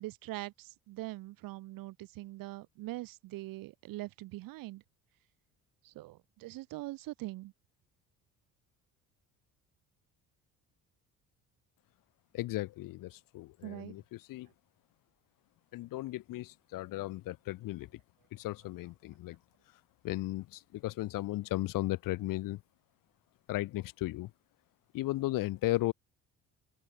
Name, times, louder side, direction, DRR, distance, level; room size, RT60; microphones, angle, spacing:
voice 1, 0.0-4.8 5.8-7.5 13.6-13.9, right 18 dB, 75° right, 1.3 m, -42 dB
voice 2, 12.3-14.5 15.7-18.0 18.3-19.4 20.0-22.6 23.5-24.3 24.9-25.9, left 17 dB, 70° left, 1.1 m, -35 dB
open air
cardioid pair, 95°, 34 cm